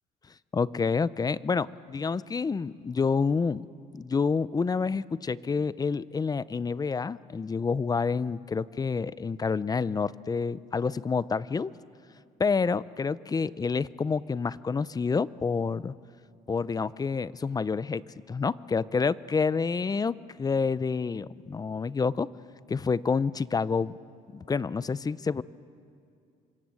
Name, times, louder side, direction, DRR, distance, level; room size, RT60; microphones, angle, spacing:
voice 1, 0.5-3.6 4.0-11.7 12.4-15.9 16.5-18.0 18.3-22.3 22.7-23.9 24.3-25.4, left 5 dB, 20° left, 18 dB, 0.6 m, -28 dB
27.5 x 25.5 x 7.7 m, 2.3 s
cardioid pair, 110°, 17 cm